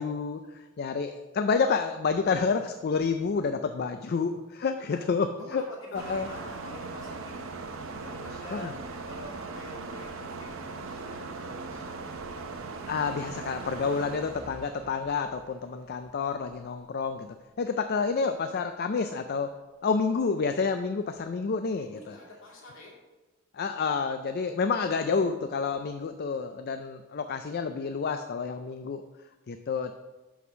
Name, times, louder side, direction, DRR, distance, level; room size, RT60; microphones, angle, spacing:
voice 1, 0.0-5.6 5.9-6.3 8.5-8.7 12.9-19.5 19.8-22.2 23.5-29.0 29.5-29.9, left 5 dB, 45° left, 8 dB, 0.4 m, -29 dB
voice 2, 5.4-7.5 7.9-8.6 9.0-12.0 21.7-22.9, left 1 dB, 60° left, -2 dB, 2.3 m, -46 dB
sound 1, 5.9-16.1, right 3 dB, 60° right, 0.8 m, -39 dB
6.2 x 5.8 x 6.1 m, 1.2 s
head